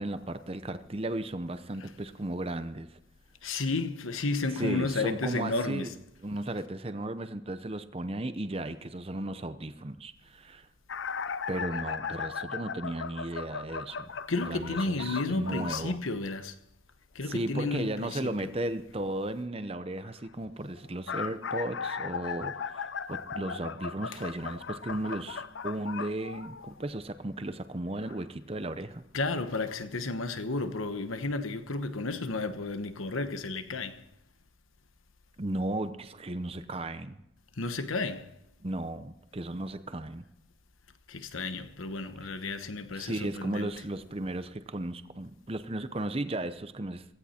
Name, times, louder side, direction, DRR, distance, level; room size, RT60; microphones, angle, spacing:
voice 1, 0.0-2.9 4.6-5.9 6.2-10.7 11.5-14.1 14.4-16.0 17.3-29.0 35.4-37.2 38.6-40.2 42.9-47.0, right 1 dB, 30° right, 0.7 m, -35 dB
voice 2, 3.4-5.9 14.3-16.6 17.1-18.5 24.1-24.2 29.1-34.0 37.5-38.3 41.1-43.7, left 3 dB, 90° left, 1.1 m, -32 dB
sound 1, 10.9-15.9 20.8-26.9 28.0-28.2 29.2-29.3 29.7-29.8, left 6 dB, 65° left, 0.6 m, -37 dB
16.5 x 15.5 x 4.4 m
head